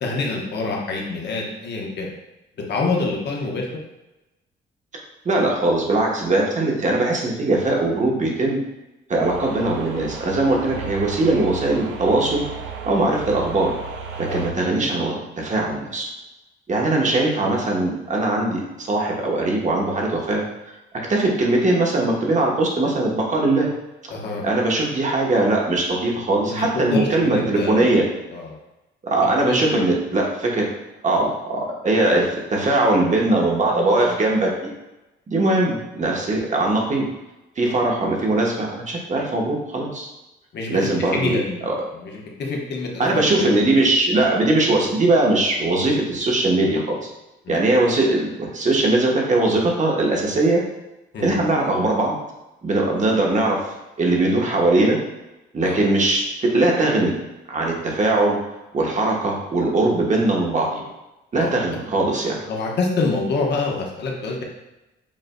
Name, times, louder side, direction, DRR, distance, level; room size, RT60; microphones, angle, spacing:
voice 1, 0.0-2.1 2.7-3.7 10.6-10.8 14.3-14.5 24.1-24.4 26.5-28.0 28.3-28.5 29.4-29.9 40.5-41.6 41.9-43.6 44.1-44.2 47.4-47.6 51.1-51.4 55.6-55.8 61.4-61.5 61.9-62.0 62.5-64.4, left 3 dB, 60° left, -1 dB, 1.0 m, -26 dB
voice 2, 5.2-8.6 9.1-12.4 12.8-13.7 14.2-16.1 16.7-20.4 21.1-23.7 24.4-28.0 29.0-30.7 31.0-34.5 35.3-37.1 37.6-40.1 40.7-41.4 41.6-41.7 43.0-46.8 47.5-50.6 51.2-52.1 52.6-53.6 54.0-55.0 55.5-57.1 57.5-58.4 58.7-60.9 61.3-62.4, right 2 dB, 40° right, -1 dB, 1.1 m, -20 dB
sound 1, 9.2-14.5, right 5 dB, 80° right, 0.6 m, -34 dB
7.3 x 2.5 x 2.2 m, 1.0 s
cardioid pair, 90°, 20 cm